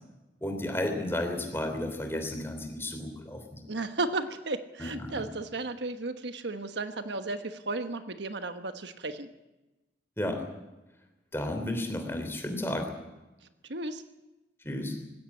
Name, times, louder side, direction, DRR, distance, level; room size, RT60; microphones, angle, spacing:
voice 1, 0.4-3.6 4.8-5.3 10.2-10.5 11.3-12.9 14.6-15.0, left 1 dB, 15° left, 5 dB, 3.3 m, -33 dB
voice 2, 3.7-9.3 13.6-14.0, right 2 dB, 70° right, 8 dB, 1.2 m, -34 dB
20.0 x 16.5 x 8.5 m, 1.0 s
head